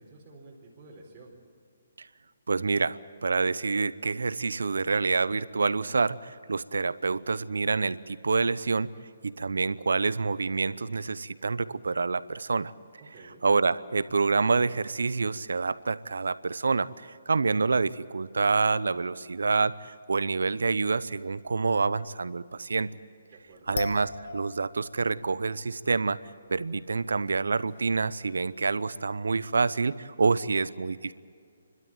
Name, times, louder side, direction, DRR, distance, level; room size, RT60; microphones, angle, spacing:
voice 1, 0.0-1.4 13.1-13.4 23.3-23.8, right 2 dB, 25° right, -7 dB, 4.4 m, -50 dB
voice 2, 2.5-8.9 9.2-12.7 13.4-22.9 23.7-26.2 26.5-31.1, right 4 dB, 85° right, 16 dB, 0.8 m, -27 dB
sound 1, 23.7-25.0 25.3-25.4 26.5-26.6 27.3-27.4 27.5-28.4, left 3 dB, 75° left, 1.9 m, -38 dB
30.0 x 12.5 x 9.0 m, 2.3 s
hypercardioid pair, 150°, 0 cm